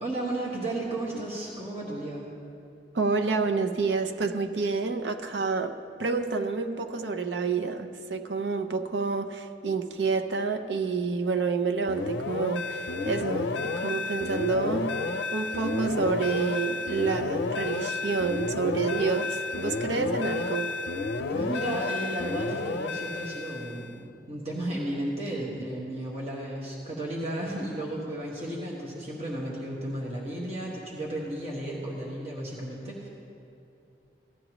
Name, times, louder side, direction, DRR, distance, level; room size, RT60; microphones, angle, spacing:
voice 1, 0.0-2.3 21.3-33.1, right 1 dB, 35° right, 1.5 m, -34 dB
voice 2, 2.9-15.0 15.3-20.7, right 4 dB, 85° right, 0.7 m, -29 dB
sound 1, 11.9-24.0, left 3 dB, 80° left, 0.5 m, -31 dB
16.5 x 11.5 x 3.0 m
head